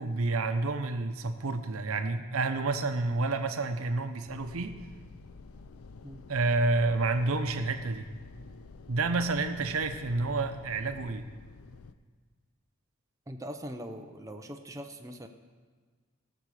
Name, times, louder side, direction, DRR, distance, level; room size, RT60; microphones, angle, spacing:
voice 1, 0.0-4.7 6.3-8.1 8.9-11.3, right 3 dB, 80° right, 7 dB, 0.8 m, -29 dB
sound 1, 4.2-11.9, left 4 dB, 85° left, 0.5 m, -50 dB
voice 2, 13.3-15.3, equal, 15° right, 4 dB, 0.6 m, -41 dB
18.0 x 6.9 x 4.9 m, 1.5 s
head